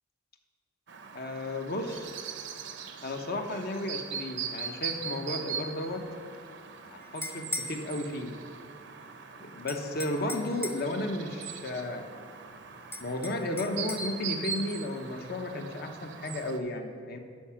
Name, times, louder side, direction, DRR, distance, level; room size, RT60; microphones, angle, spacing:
Chirp tweet, 0.9-16.6, right 6 dB, 60° right, 0.7 m, -41 dB
voice 1, 1.1-2.1 3.0-6.1 6.8-8.3 9.4-12.1 13.0-17.2, left 1 dB, 50° left, 5 dB, 0.9 m, -34 dB
sound 1, 7.0-7.8 9.7-10.9 12.9-14.1, left 1 dB, 15° left, 0.7 m, -38 dB
12.0 x 5.0 x 5.8 m, 2.1 s
head